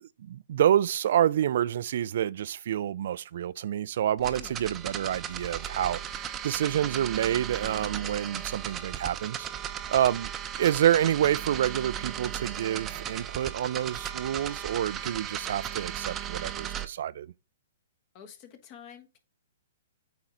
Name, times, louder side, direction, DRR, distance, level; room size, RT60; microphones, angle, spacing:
voice 1, 0.2-9.5 9.9-10.3 10.6-17.3, right 10 dB, 60° right, 0.4 m, -28 dB
voice 2, 4.2-4.8 18.1-19.2, left 8 dB, 40° left, 1.4 m, -49 dB
sound 1, 4.2-16.9, right 10 dB, 20° right, 0.7 m, -36 dB
8.4 x 3.8 x 4.6 m
hypercardioid pair, 135°, 0 cm